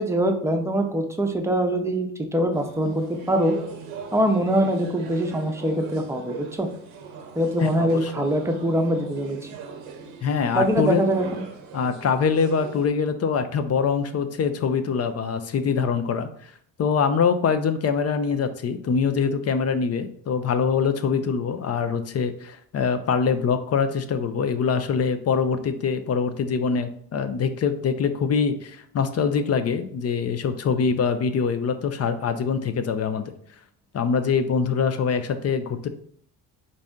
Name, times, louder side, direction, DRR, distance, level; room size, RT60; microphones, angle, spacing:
voice 1, 0.0-3.5 4.1-6.7 7.4-9.4 10.5-11.4, right 1 dB, 5° right, 3 dB, 0.7 m, -23 dB
sound 1, 2.5-12.9, right 5 dB, 85° right, 0.8 m, -41 dB
voice 2, 7.6-8.1 10.2-11.0 11.7-16.5 16.8-33.3 33.9-35.9, left 6 dB, 35° left, 10 dB, 0.4 m, -24 dB
4.0 x 2.6 x 3.6 m, 0.63 s
supercardioid pair, 70°, 46 cm